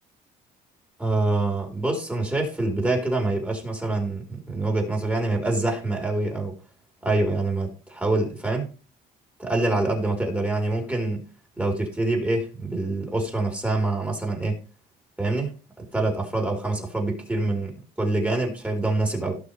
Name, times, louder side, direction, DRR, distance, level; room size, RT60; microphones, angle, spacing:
voice 1, 1.0-6.5 7.0-8.7 9.4-11.2 11.6-14.6 15.2-17.7 18.0-19.4, right 2 dB, 10° right, 4.5 m, -25 dB
17.5 x 6.3 x 3.4 m
cardioid pair, 110°, 17 cm